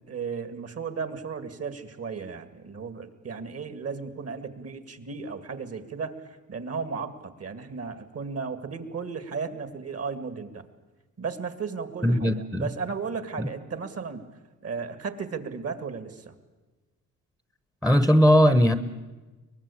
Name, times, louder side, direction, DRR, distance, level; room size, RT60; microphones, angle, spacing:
voice 1, 0.0-10.6 11.2-14.3 14.6-16.3, right 5 dB, 45° right, 11 dB, 2.2 m, -35 dB
voice 2, 12.0-12.7 13.4-13.5 17.8-18.8, equal, ahead, 14 dB, 1.0 m, -19 dB
23.5 x 19.5 x 8.6 m, 1.2 s
cardioid pair, 90°, 33 cm